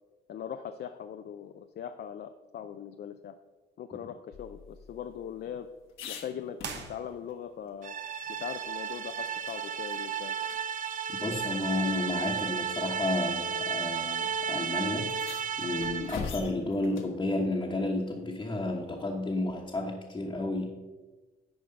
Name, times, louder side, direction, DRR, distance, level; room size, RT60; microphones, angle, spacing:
voice 1, 0.3-3.3 3.8-5.7 6.1-6.6 6.9-8.0 8.3-10.4, left 9 dB, 55° left, 8 dB, 0.5 m, -40 dB
sound 1, 4.3-7.3 7.7-7.8 8.1-9.6 9.9-10.0 10.4-10.6 11.6-11.7 12.6-12.9 13.9-14.0 14.3-14.4 15.0-17.2 19.4-19.9, left 6 dB, 75° left, 1.2 m, -44 dB
sound 2, 6.6-7.6, right 6 dB, 65° right, 1.1 m, -42 dB
sound 3, 7.8-16.3, right 7 dB, 40° right, 0.6 m, -33 dB
voice 2, 11.1-15.2 15.6-20.7, left 2 dB, 20° left, -2 dB, 1.2 m, -31 dB
9.8 x 4.9 x 5.1 m, 1.2 s
cardioid pair, 90°, 20 cm